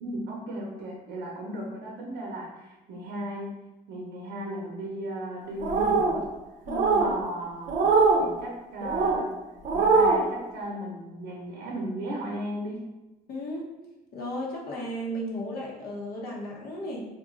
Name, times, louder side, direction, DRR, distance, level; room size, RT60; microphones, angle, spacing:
voice 1, 0.0-3.5 3.9-6.2 7.0-7.9 8.2-9.3 9.7-12.8, right 1 dB, 85° right, -3 dB, 0.7 m, -35 dB
sound 1, 5.6-6.2 6.7-7.1 7.7-8.2 8.8-9.2 9.6-10.2, right 4 dB, 45° right, 0.6 m, -22 dB
voice 2, 6.7-7.1 13.3-13.7 14.1-17.0, equal, 65° left, -3 dB, 0.9 m, -34 dB
2.6 x 2.2 x 3.8 m, 1.0 s
cardioid pair, 110°, 17 cm